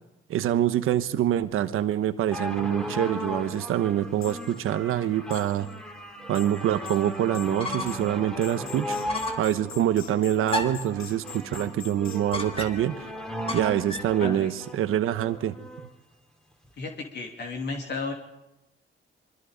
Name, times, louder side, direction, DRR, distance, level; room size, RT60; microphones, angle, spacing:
voice 1, 0.3-5.7 6.3-9.0 9.4-13.1 13.5-15.5, right 11 dB, 90° right, 11 dB, 1.1 m, -25 dB
sound 1, 2.3-15.9 16.6-16.7, equal, 5° left, 3.0 m, -37 dB
sound 2, 3.2-3.3 3.5-3.6 4.2-4.7 5.3-5.8 6.1-12.3, left 7 dB, 80° left, 2.3 m, -45 dB
sound 3, 7.6-8.1 8.5-8.6 9.1-9.5 10.5-10.9 12.3-13.0 13.5-14.2, left 2 dB, 25° left, 2.6 m, -33 dB
voice 2, 14.2-14.5 16.8-18.1, left 3 dB, 55° left, 1 dB, 2.9 m, -33 dB
27.0 x 23.5 x 5.2 m, 0.95 s
cardioid pair, 100°, 21 cm